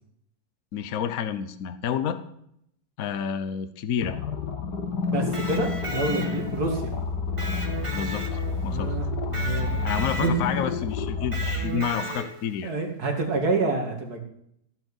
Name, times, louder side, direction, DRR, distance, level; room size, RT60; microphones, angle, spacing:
voice 1, 0.7-2.2 3.0-4.2 7.9-8.9 9.8-12.7 13.3-13.4, left 8 dB, 60° left, 11 dB, 1.2 m, -29 dB
sound 1, 4.0-11.6, left 4 dB, 85° left, 2.1 m, -29 dB
voice 2, 5.1-6.9 8.7-9.8 10.2-10.3 11.6-12.1 12.6-14.2, right 3 dB, 70° right, 3 dB, 2.8 m, -28 dB
Electric guitar, 5.2-6.7 7.4-8.8 9.3-10.6 11.3-12.5, right 2 dB, 20° right, 1.6 m, -35 dB
15.5 x 6.3 x 8.1 m, 0.72 s
omnidirectional pair, 1.7 m